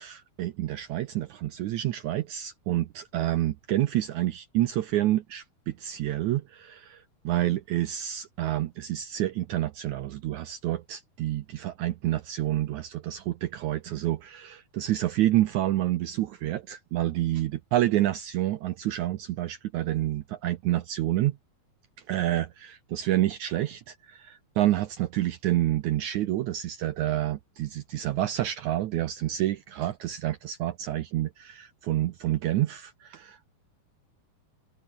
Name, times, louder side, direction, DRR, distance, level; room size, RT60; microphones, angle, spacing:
voice 1, 0.0-21.4 22.1-33.5, right 14 dB, 75° right, 1.8 m, -28 dB
omnidirectional pair, 4.3 m